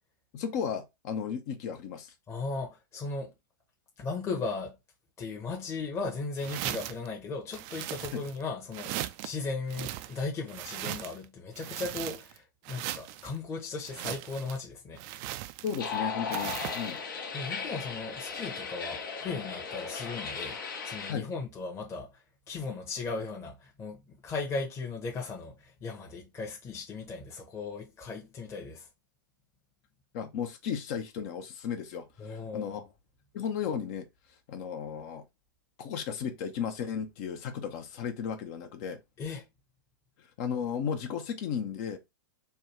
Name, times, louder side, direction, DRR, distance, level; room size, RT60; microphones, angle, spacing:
voice 1, 0.3-2.1 8.1-8.2 15.6-17.0 21.1-21.3 30.1-32.8 33.3-34.0 34.5-35.2 35.8-39.0 40.4-42.0, left 7 dB, 50° left, 0.8 m, -34 dB
voice 2, 2.3-3.3 4.0-4.8 5.2-15.4 17.3-20.6 20.8-28.9 32.2-32.8 39.2-39.4, left 4 dB, 25° left, 1.0 m, -37 dB
sound 1, 6.4-7.1 7.5-8.4 8.7-9.3 9.7-11.3 11.6-12.4 12.7-13.3 13.8-14.6 15.0-15.9 16.3-16.9, right 14 dB, 45° right, 0.4 m, -38 dB
sound 2, 15.8-21.1, left 5 dB, 70° left, 1.2 m, -36 dB
3.4 x 2.3 x 4.3 m
hypercardioid pair, 110°, 11 cm